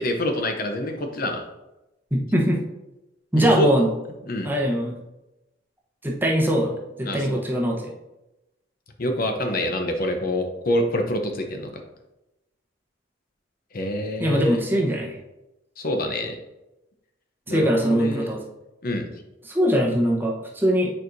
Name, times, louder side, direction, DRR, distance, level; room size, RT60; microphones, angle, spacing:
voice 1, 0.0-1.4 3.4-3.7 4.3-4.5 7.0-7.4 9.0-11.7 13.7-14.6 15.8-16.4 17.5-18.3 18.8-19.1, left 1 dB, 50° left, 4 dB, 0.7 m, -26 dB
voice 2, 2.1-2.6 3.3-3.9 4.4-5.0 6.0-7.9 14.2-15.2 17.5-18.4 19.4-20.9, equal, 10° right, -2 dB, 0.9 m, -22 dB
8.9 x 4.5 x 2.6 m, 0.97 s
head